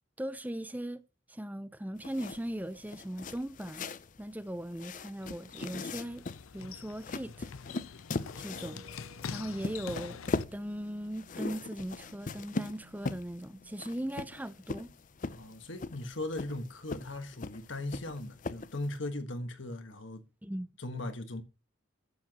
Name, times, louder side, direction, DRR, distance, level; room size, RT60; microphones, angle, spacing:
voice 1, 0.2-1.0 1.3-3.8 4.2-6.2 6.5-7.8 8.4-8.8 9.3-10.2 10.5-14.9 20.4-20.7, right 1 dB, 10° right, 0.6 m, -39 dB
sound 1, 2.0-19.0, left 3 dB, 40° left, 0.5 m, -40 dB
sound 2, 4.9-10.4, left 6 dB, 85° left, 0.6 m, -45 dB
sound 3, 8.3-14.4, right 1 dB, 30° right, 1.4 m, -59 dB
voice 2, 15.3-20.2 20.8-21.4, left 2 dB, 65° left, 1.5 m, -38 dB
11.5 x 8.4 x 3.0 m
head